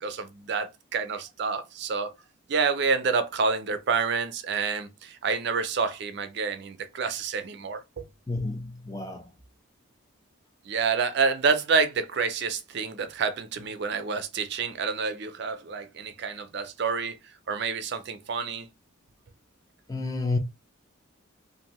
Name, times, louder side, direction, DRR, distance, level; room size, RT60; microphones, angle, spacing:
voice 1, 0.0-2.1 2.5-8.0 10.7-17.2 17.5-18.7, right 5 dB, 50° right, 0.4 m, -28 dB
voice 2, 8.3-9.3 19.9-20.4, left 3 dB, 15° left, 0.4 m, -30 dB
2.6 x 2.5 x 3.0 m
head